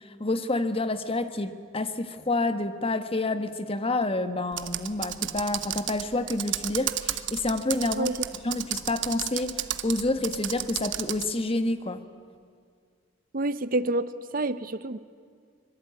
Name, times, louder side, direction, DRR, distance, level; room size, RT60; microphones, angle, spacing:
voice 1, 0.2-8.1 8.4-12.0, left 2 dB, 30° left, 10 dB, 1.3 m, -28 dB
Computer keyboard, 4.5-11.3, right 12 dB, 75° right, 1.1 m, -33 dB
voice 2, 13.3-15.0, right 2 dB, 50° right, 14 dB, 0.8 m, -28 dB
25.0 x 22.0 x 9.5 m, 2.1 s
head